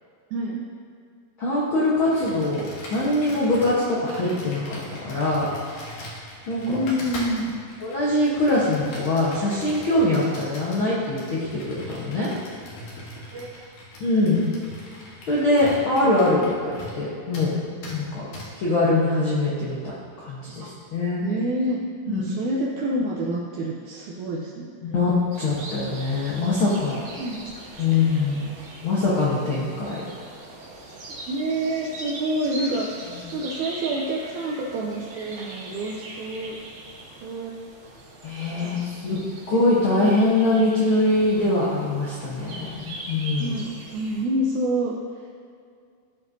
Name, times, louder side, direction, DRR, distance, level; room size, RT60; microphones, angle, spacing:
voice 1, 0.3-0.6 6.6-7.4 13.3-13.7 14.3-14.5 18.4-18.5 20.6-20.7 21.2-24.7 27.2-27.4 27.9-28.3 31.3-36.6 37.2-37.5 38.6-39.3 43.4-45.0, right 1 dB, 80° right, -3 dB, 1.7 m, -28 dB
voice 2, 1.4-2.6 2.9-5.5 6.5-6.6 7.8-12.3 14.0-14.4 15.3-18.2 18.5-19.8 20.2-21.3 22.1-22.2 24.8-27.0 27.8-28.5 28.8-30.0 38.2-39.2 39.5-43.5, left 2 dB, 80° left, -7 dB, 1.1 m, -23 dB
Computer keyboard, 2.1-17.1 17.3-17.5 17.8-18.0 18.3-18.5, left 1 dB, 60° left, 2.2 m, -41 dB
sound 1, 25.3-44.2, right 2 dB, 65° right, 1.3 m, -41 dB
14.5 x 5.4 x 2.7 m, 2.2 s
omnidirectional pair, 4.2 m